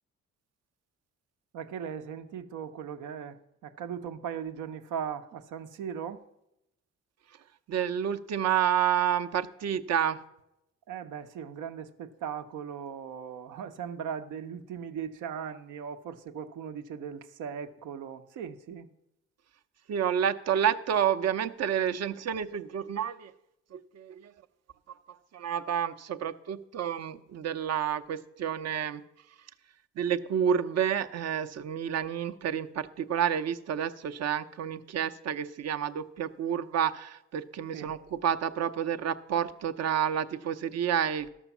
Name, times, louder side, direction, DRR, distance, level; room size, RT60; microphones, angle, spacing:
voice 1, 1.5-6.2 10.9-18.9 37.7-37.9, right 8 dB, 85° right, 9 dB, 0.9 m, -38 dB
voice 2, 7.7-10.2 19.9-23.3 23.7-24.3 25.3-29.0 30.0-41.3, right 9 dB, 60° right, 9 dB, 0.7 m, -29 dB
12.5 x 6.4 x 7.1 m, 0.85 s
cardioid pair, 90°, 30 cm